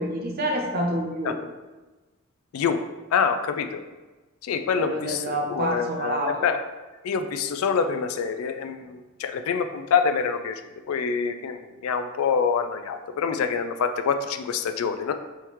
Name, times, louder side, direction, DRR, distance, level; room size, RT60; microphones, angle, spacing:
voice 1, 0.0-1.4 4.8-6.4, right 1 dB, 45° right, 1 dB, 0.7 m, -28 dB
voice 2, 2.5-2.8 3.1-3.8 4.4-6.6 7.0-10.6 10.9-15.1, left 6 dB, 80° left, 8 dB, 0.3 m, -26 dB
4.5 x 3.5 x 3.0 m, 1.2 s
head